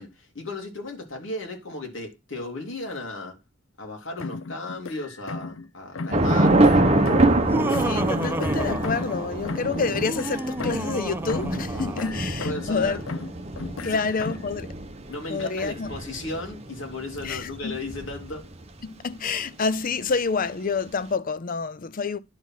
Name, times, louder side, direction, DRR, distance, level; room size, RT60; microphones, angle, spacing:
voice 1, 0.0-3.4 3.8-6.9 12.4-13.0 13.8-14.0 15.1-18.4, left 2 dB, 70° left, 3.0 m, -35 dB
sound 1, 4.2-5.7 6.0-7.5 7.7-11.0 11.3-12.8 13.1-14.5, left 3 dB, 90° left, 0.6 m, -35 dB
Thunder / Rain, 6.1-18.6, right 2 dB, 30° right, 1.1 m, -25 dB
Laughter, 7.3-9.4 9.9-12.3, right 1 dB, 10° right, 0.5 m, -32 dB
voice 2, 7.7-13.0 13.8-14.7 15.3-15.9 17.2-17.8 18.8-22.2, left 4 dB, 45° left, 0.5 m, -28 dB
10.5 x 4.6 x 5.8 m
head